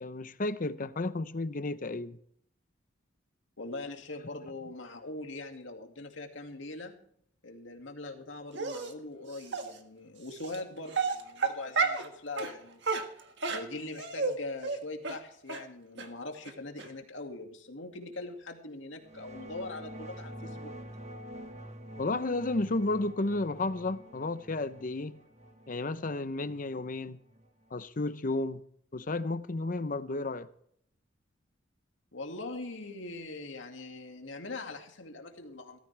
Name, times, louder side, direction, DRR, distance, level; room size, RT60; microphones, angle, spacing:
voice 1, 0.0-2.2 22.0-25.2 25.7-27.2 27.7-28.6 28.9-30.5, left 2 dB, 45° left, 0.8 m, -32 dB
voice 2, 3.6-6.9 7.4-12.9 13.5-20.8 32.1-35.8, left 2 dB, 80° left, 2.3 m, -42 dB
Dog, 8.6-8.9 9.5-9.6 10.4-10.6 10.9-12.1 12.4-12.5 12.8-14.3 14.6-14.8 15.0-15.2 15.5-15.6 16.0-16.1 16.5-16.6 16.8-16.9, right 4 dB, 65° right, 1.7 m, -31 dB
sound 1, 19.0-27.7, equal, 35° right, 1.4 m, -47 dB
16.5 x 14.5 x 3.4 m
head